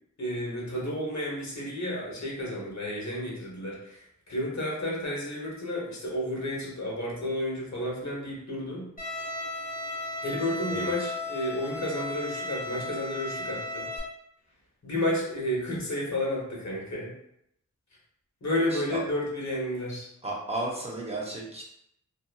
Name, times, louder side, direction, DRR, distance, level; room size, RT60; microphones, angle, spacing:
voice 1, 0.2-8.9 10.2-13.9 14.8-17.1 18.4-20.1, left 1 dB, 65° left, -4 dB, 1.0 m, -31 dB
Bowed string instrument, 9.0-14.0, left 2 dB, 25° left, 1.0 m, -35 dB
voice 2, 20.2-21.6, right 2 dB, 20° right, -3 dB, 0.8 m, -34 dB
2.8 x 2.5 x 2.3 m, 0.77 s
wide cardioid pair, 80°, 30 cm